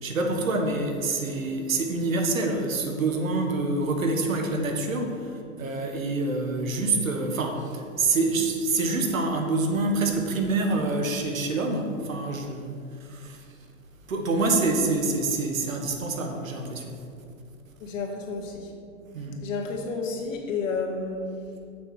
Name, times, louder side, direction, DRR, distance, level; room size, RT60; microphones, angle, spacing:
voice 1, 0.0-13.4 14.1-17.0 19.1-19.4, right 3 dB, 90° right, 3 dB, 1.5 m, -26 dB
voice 2, 17.8-18.7 19.4-21.2, left 4 dB, 70° left, 1 dB, 2.0 m, -31 dB
7.1 x 6.2 x 6.3 m, 2.4 s
hypercardioid pair, 120°, 39 cm